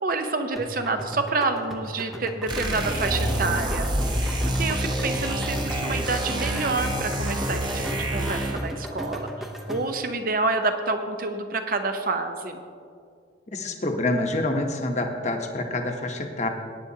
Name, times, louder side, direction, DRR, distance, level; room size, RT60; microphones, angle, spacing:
voice 1, 0.0-3.9 4.5-9.3 9.7-12.6, right 3 dB, 50° right, 6 dB, 0.8 m, -28 dB
sound 1, 0.6-10.1, equal, ahead, 0.7 m, -37 dB
sound 2, 2.5-8.7, right 1 dB, 25° right, 1.0 m, -27 dB
voice 2, 13.5-16.5, left 2 dB, 40° left, 3 dB, 1.0 m, -27 dB
17.5 x 9.4 x 2.9 m, 2.3 s
head